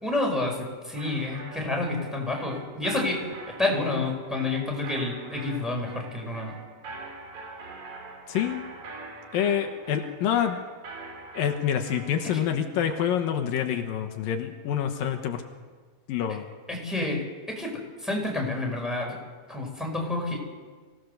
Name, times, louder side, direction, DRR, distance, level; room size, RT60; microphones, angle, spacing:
voice 1, 0.0-6.5 16.7-17.7 18.0-19.2 19.5-20.4, left 2 dB, ahead, 0 dB, 4.5 m, -29 dB
sound 1, 1.0-12.3, right 3 dB, 80° right, 5.3 m, -43 dB
voice 2, 8.3-8.6 9.3-10.6 11.3-15.4 16.1-16.5 17.0-17.1, left 9 dB, 80° left, 5 dB, 2.9 m, -27 dB
24.0 x 17.5 x 6.7 m, 1.5 s
omnidirectional pair, 4.1 m